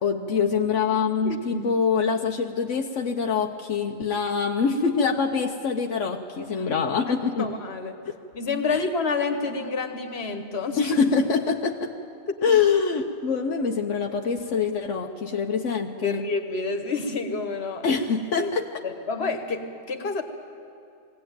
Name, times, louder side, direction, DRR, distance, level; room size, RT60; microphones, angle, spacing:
voice 1, 0.0-7.5 8.7-8.8 10.8-11.9 12.4-16.2 17.8-18.8, left 5 dB, 85° left, 2 dB, 1.2 m, -24 dB
voice 2, 1.2-1.7 7.1-8.0 8.3-10.8 12.3-12.4 16.0-17.9 18.4-18.5 18.8-20.2, left 4 dB, 60° left, 6 dB, 1.7 m, -29 dB
21.0 x 17.5 x 9.1 m, 2.5 s
omnidirectional pair, 1.2 m